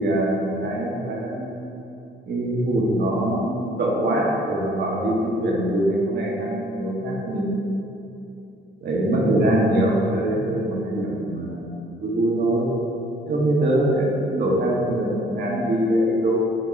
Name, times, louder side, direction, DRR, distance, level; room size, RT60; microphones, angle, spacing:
voice 1, 0.0-1.6 2.3-7.6 8.8-12.7 13.3-16.4, right 1 dB, 55° right, -3 dB, 1.4 m, -23 dB
6.6 x 3.7 x 4.6 m, 2.7 s
cardioid pair, 90°, 20 cm